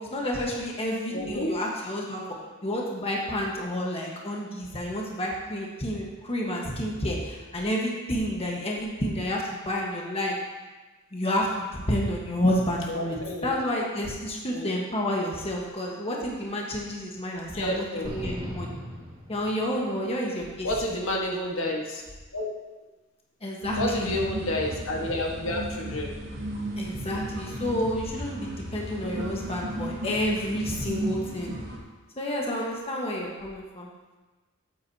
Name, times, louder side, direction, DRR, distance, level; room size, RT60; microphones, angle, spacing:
voice 1, 0.0-2.2 2.6-10.4 11.1-18.8 19.3-20.7 23.4-24.2 26.8-31.5 32.2-33.9, equal, 30° left, -2 dB, 1.4 m, -30 dB
voice 2, 1.1-1.5 12.9-13.7 14.5-14.7 17.5-18.1 20.6-22.0 22.3-22.5 23.8-26.1 29.0-29.3, left 1 dB, 70° left, -1 dB, 1.5 m, -30 dB
sound 1, 18.0-20.0, equal, 25° right, 1.8 m, -37 dB
sound 2, 23.6-31.8, right 1 dB, 65° right, 2.2 m, -34 dB
13.0 x 8.3 x 2.8 m, 1.2 s
head